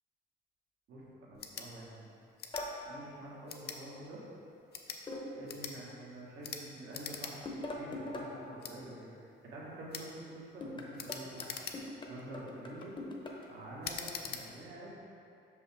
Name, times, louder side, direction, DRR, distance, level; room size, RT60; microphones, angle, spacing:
voice 1, 0.9-2.1 2.8-4.2 5.3-11.5 12.0-13.0 13.5-15.0, right 1 dB, 70° right, -5 dB, 1.4 m, -47 dB
sound 1, 1.3-1.7 2.4-2.7 3.5-3.8 4.6-5.0 5.5-5.8 6.4-6.6 6.9-7.3 7.7-7.8 8.6-8.8 9.9-10.1 11.0-12.0 12.6-12.9 13.8-14.4, left 6 dB, 55° left, 0.6 m, -42 dB
sound 2, 2.5-2.8 5.1-5.5 7.4-8.3 10.6-13.5, left 1 dB, 25° left, 0.8 m, -42 dB
5.8 x 5.3 x 3.4 m, 2.6 s
cardioid pair, 90°, 20 cm